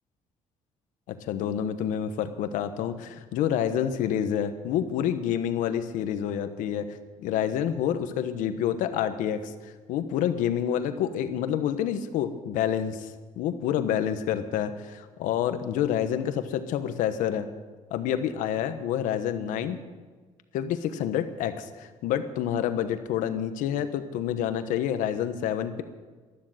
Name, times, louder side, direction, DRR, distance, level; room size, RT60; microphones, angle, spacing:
voice 1, 1.1-17.5 17.9-19.8 20.5-25.8, left 9 dB, 85° left, 10 dB, 1.2 m, -28 dB
12.5 x 12.0 x 7.9 m, 1.4 s
cardioid pair, 100°, 13 cm